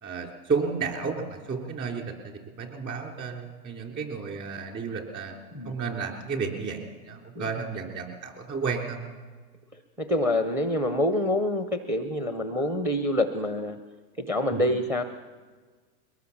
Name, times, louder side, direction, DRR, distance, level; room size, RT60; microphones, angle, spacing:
voice 1, 0.0-5.4 5.6-9.0 14.5-14.6, right 5 dB, 25° right, 2 dB, 3.7 m, -32 dB
voice 2, 9.7-13.8 14.2-15.0, left 1 dB, 5° right, 8 dB, 0.6 m, -26 dB
22.5 x 18.5 x 7.2 m, 1.4 s
hypercardioid pair, 135°, 47 cm